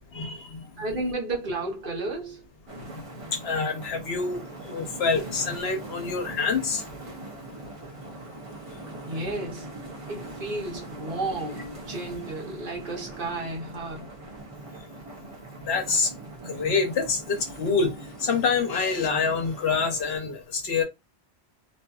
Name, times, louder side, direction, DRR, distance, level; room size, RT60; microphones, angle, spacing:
voice 1, 0.1-0.6 2.9-3.0 3.3-6.8 15.6-16.1 16.4-20.8, left 5 dB, 70° left, 1.0 m, -26 dB
voice 2, 0.8-2.4 9.1-9.7 10.1-14.1, right 2 dB, 55° right, 1.0 m, -32 dB
sound 1, 2.7-20.2, right 2 dB, 35° right, 0.6 m, -42 dB
2.6 x 2.5 x 2.3 m
omnidirectional pair, 1.1 m